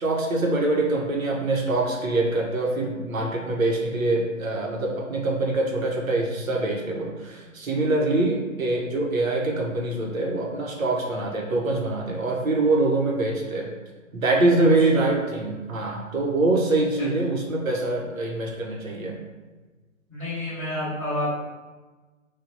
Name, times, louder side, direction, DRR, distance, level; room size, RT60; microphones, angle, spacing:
voice 1, 0.0-13.7 14.1-19.2, right 2 dB, 80° right, -1 dB, 0.9 m, -24 dB
voice 2, 20.1-21.4, left 1 dB, 5° left, -15 dB, 0.7 m, -29 dB
3.2 x 2.3 x 2.6 m, 1.3 s
figure-of-eight pair, 140°, 40 cm